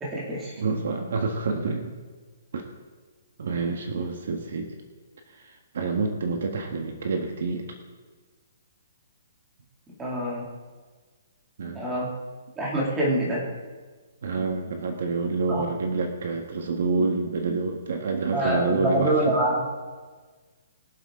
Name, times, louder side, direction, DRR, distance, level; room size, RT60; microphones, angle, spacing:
voice 1, 0.0-0.5 10.0-10.5 11.7-12.1 12.6-13.4 15.5-15.6 18.3-19.7, right 1 dB, 10° right, -5 dB, 2.3 m, -25 dB
voice 2, 0.6-1.9 2.5-2.7 3.4-4.7 5.3-7.6 11.6-11.8 14.2-19.1, right 4 dB, 55° right, 4 dB, 1.5 m, -28 dB
22.5 x 7.9 x 3.7 m, 1.4 s
hypercardioid pair, 175°, 0 cm